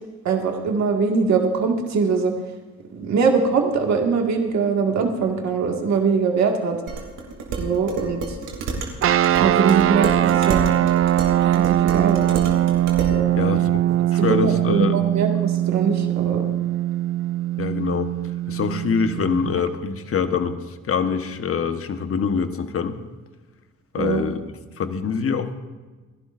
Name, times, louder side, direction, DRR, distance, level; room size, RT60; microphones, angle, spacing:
voice 1, 0.2-2.3 2.9-6.8 7.6-8.4 9.4-10.7 11.4-12.2 13.1-13.3 14.2-16.4 24.0-24.2, right 5 dB, 65° right, 2 dB, 2.0 m, -22 dB
Dishes pots and pans, 6.9-13.2, right 4 dB, 90° right, 2.9 m, -30 dB
sound 1, 9.0-19.7, right 12 dB, 45° right, 0.5 m, -21 dB
voice 2, 13.4-13.8 14.1-15.1 17.6-18.1 18.5-23.0 23.9-24.4 24.8-25.5, left 6 dB, 50° left, 8 dB, 1.3 m, -24 dB
29.5 x 11.5 x 2.6 m, 1.3 s
cardioid pair, 90°, 30 cm